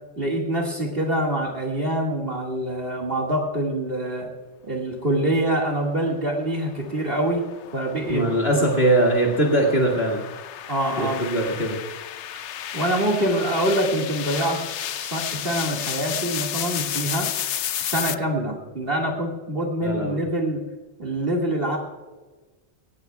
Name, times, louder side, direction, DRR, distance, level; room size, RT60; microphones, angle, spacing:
voice 1, 0.2-4.3 4.6-7.4 7.7-8.3 8.5-8.8 10.7-11.2 12.7-14.6 14.9-17.3 17.8-20.6 21.0-21.8, right 1 dB, 50° right, 0 dB, 2.3 m, -25 dB
sound 1, 6.1-18.1, left 10 dB, 75° left, 0.9 m, -32 dB
voice 2, 8.1-10.2 11.0-11.8 19.8-20.2, right 1 dB, 55° left, -2 dB, 2.3 m, -21 dB
19.0 x 18.5 x 2.3 m, 1.2 s
omnidirectional pair, 1.2 m